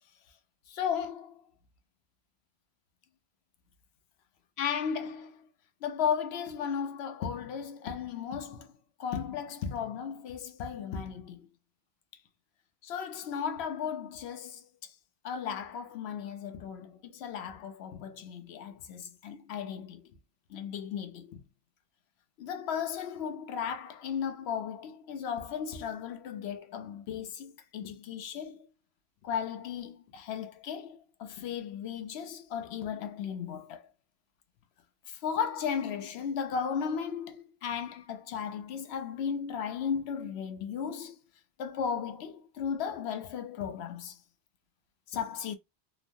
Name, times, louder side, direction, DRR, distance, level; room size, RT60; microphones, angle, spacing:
voice 1, 0.7-1.3 4.6-5.3 5.8-8.7 9.0-11.5 12.8-14.6 15.2-20.0 20.5-21.4 22.4-28.7 29.2-33.8 35.1-41.2 41.6-44.2 45.1-45.6, left 7 dB, 75° left, 0.8 m, -35 dB
3.0 x 2.0 x 2.6 m
omnidirectional pair, 1.1 m